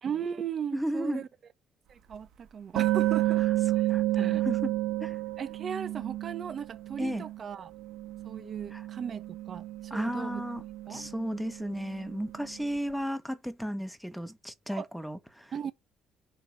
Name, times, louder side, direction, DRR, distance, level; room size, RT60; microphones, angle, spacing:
voice 1, 0.0-1.3 1.9-3.4 3.8-3.9 4.2-4.4 5.4-7.7 8.2-10.4 10.9-11.0 14.7-14.9 15.5-15.7, right 7 dB, 45° right, 0.8 m, -37 dB
voice 2, 0.7-1.2 3.4-3.5 3.9-4.7 5.0-5.2 7.0-7.2 8.7-8.9 9.9-10.6 10.9-15.7, equal, ahead, 0.9 m, -34 dB
sound 1, 2.1-2.2 2.8-7.4 7.7-12.6, right 15 dB, 80° right, 1.3 m, -31 dB
7.2 x 3.0 x 6.0 m
cardioid pair, 125°, 0 cm